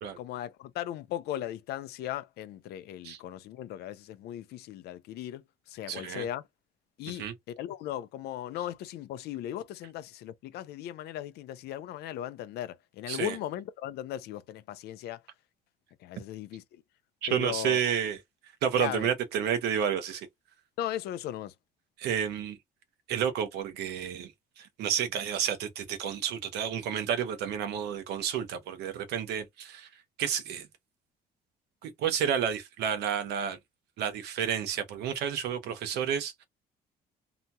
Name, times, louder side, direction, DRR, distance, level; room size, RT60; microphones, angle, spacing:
voice 1, 0.2-6.5 7.0-7.3 7.6-15.2 16.0-16.8 17.3-17.9 18.7-19.1 20.8-21.5, left 12 dB, 75° left, 0.5 m, -37 dB
voice 2, 5.9-6.2 7.2-7.3 13.1-13.3 17.2-18.2 18.6-20.3 22.0-22.6 23.1-24.3 24.6-29.9 30.2-30.7 31.8-33.6 34.0-36.4, right 8 dB, 80° right, 0.8 m, -30 dB
2.8 x 2.2 x 2.7 m
cardioid pair, 110°, 17 cm